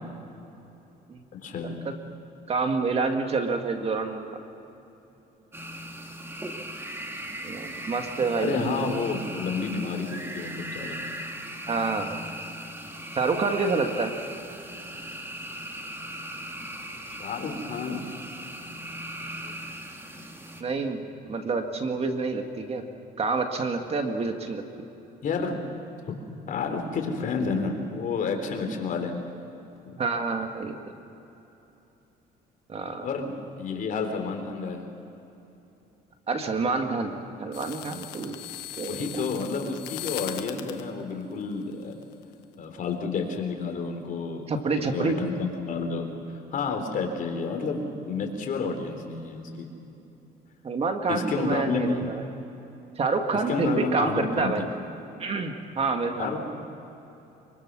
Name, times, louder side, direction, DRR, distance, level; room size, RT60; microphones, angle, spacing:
voice 1, 1.3-1.9 8.4-11.0 17.2-18.0 19.4-19.6 25.2-25.6 26.5-29.2 29.9-30.0 33.0-33.3 33.6-34.8 38.9-41.9 42.6-46.1 46.5-49.7 51.1-52.1 53.5-54.7 56.2-56.4, left 4 dB, 55° left, 4 dB, 3.6 m, -30 dB
voice 2, 2.5-4.2 7.4-8.9 11.7-12.2 13.2-14.1 20.6-22.8 23.2-24.6 30.0-30.8 32.7-33.1 36.3-38.4 38.8-39.1 44.5-45.2 50.6-52.2 53.0-54.6 55.2-56.4, right 4 dB, 35° right, 5 dB, 2.1 m, -28 dB
sound 1, 5.5-20.6, right 1 dB, 15° right, 2.3 m, -38 dB
sound 2, 37.5-40.8 41.6-42.2, left 13 dB, 90° left, 1.3 m, -39 dB
25.0 x 23.5 x 6.3 m, 3.0 s
cardioid pair, 110°, 17 cm